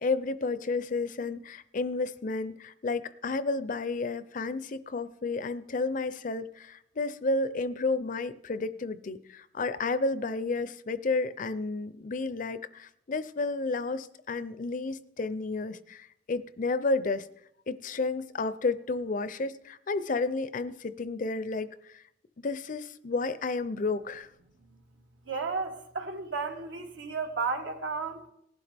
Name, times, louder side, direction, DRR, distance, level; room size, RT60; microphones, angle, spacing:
voice 1, 0.0-17.3 17.7-22.0 22.4-24.3, left 3 dB, 45° left, 0.5 m, -31 dB
voice 2, 25.2-28.3, right 4 dB, 75° right, 1.6 m, -33 dB
18.5 x 11.5 x 3.4 m
head